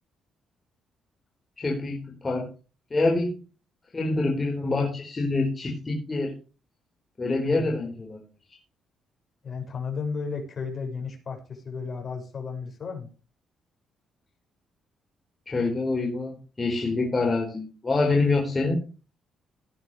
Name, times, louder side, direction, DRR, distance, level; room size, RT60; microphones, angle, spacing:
voice 1, 1.6-2.5 2.9-3.3 3.9-6.3 7.2-8.2 15.5-18.8, left 3 dB, 25° left, 0 dB, 4.5 m, -26 dB
voice 2, 7.4-7.9 9.4-13.1, left 5 dB, 45° left, 3 dB, 6.4 m, -34 dB
18.0 x 9.8 x 3.3 m, 0.34 s
cardioid pair, 90°, 0 cm